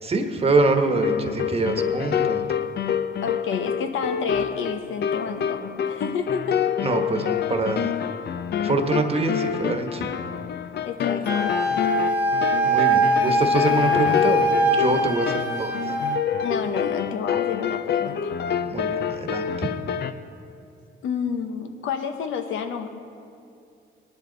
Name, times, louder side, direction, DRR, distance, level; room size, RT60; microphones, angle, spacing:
voice 1, 0.0-2.4 6.8-7.9 8.6-10.1 12.6-14.5 14.8-15.9 18.7-19.7, right 3 dB, 30° right, 5 dB, 1.3 m, -24 dB
sound 1, 0.9-20.1, left 8 dB, 55° left, 0.6 m, -27 dB
voice 2, 3.2-6.6 10.8-11.6 16.4-18.3 21.0-22.9, left 6 dB, 80° left, 7 dB, 1.0 m, -29 dB
Wind instrument woodwind instrument, 11.3-16.2, right 1 dB, 5° right, 1.5 m, -22 dB
18.5 x 11.0 x 4.0 m, 2.6 s
cardioid pair, 90°, 20 cm